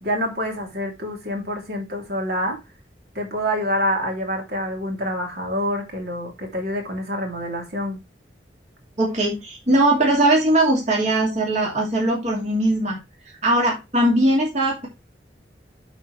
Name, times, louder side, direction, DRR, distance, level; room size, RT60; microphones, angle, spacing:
voice 1, 0.0-2.6 3.1-8.0, equal, 60° right, 3.2 m, -26 dB
voice 2, 9.0-13.0 13.4-14.9, right 1 dB, 40° right, 2.7 m, -20 dB
11.5 x 4.7 x 3.3 m
head